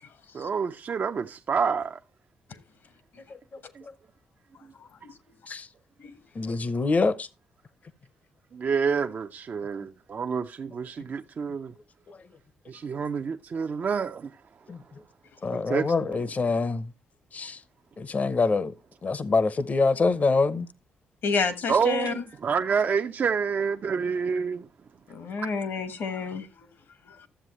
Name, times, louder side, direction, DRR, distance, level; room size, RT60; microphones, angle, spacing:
voice 1, 0.3-2.0 8.5-11.7 12.7-14.3 15.5-15.9 21.7-24.7, right 6 dB, 50° right, 0.5 m, -28 dB
voice 2, 6.4-7.3 14.7-14.8 15.4-16.9 17.3-17.6 18.0-18.7 19.0-20.7, left 3 dB, 40° left, 0.7 m, -25 dB
voice 3, 21.2-22.2 25.1-26.7 27.0-27.3, left 4 dB, 65° left, 1.3 m, -30 dB
12.5 x 7.5 x 3.1 m
supercardioid pair, 60°, 4 cm